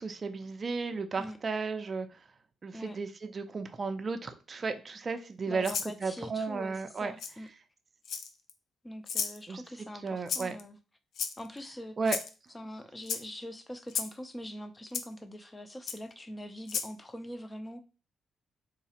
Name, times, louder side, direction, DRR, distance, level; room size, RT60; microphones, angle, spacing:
voice 1, 0.0-2.1 2.6-5.7 6.0-7.1 9.5-9.6 10.0-10.6 12.0-12.2, right 4 dB, 35° right, 8 dB, 0.4 m, -34 dB
voice 2, 5.5-7.5 8.8-10.8 11.4-12.0 12.5-17.8, equal, 15° left, 9 dB, 0.5 m, -43 dB
Rattle (instrument), 5.6-5.9 7.2-7.3 8.0-8.5 9.1-9.4 10.3-10.6 11.1-11.6 12.1-12.3 13.0-13.2 13.9-14.1 14.9-15.0 15.9-16.0 16.6-16.9, left 6 dB, 70° left, 0.4 m, -33 dB
3.9 x 2.3 x 2.9 m, 0.33 s
cardioid pair, 90°, 0 cm